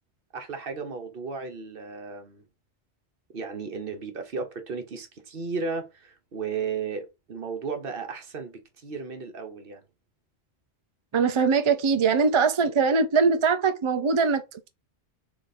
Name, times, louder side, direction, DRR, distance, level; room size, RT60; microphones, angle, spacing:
voice 1, 0.3-2.4 3.3-9.8 13.2-13.4, right 5 dB, 60° right, 1.1 m, -34 dB
voice 2, 11.1-14.7, right 5 dB, 40° right, 0.4 m, -22 dB
3.8 x 3.1 x 4.1 m
omnidirectional pair, 1.1 m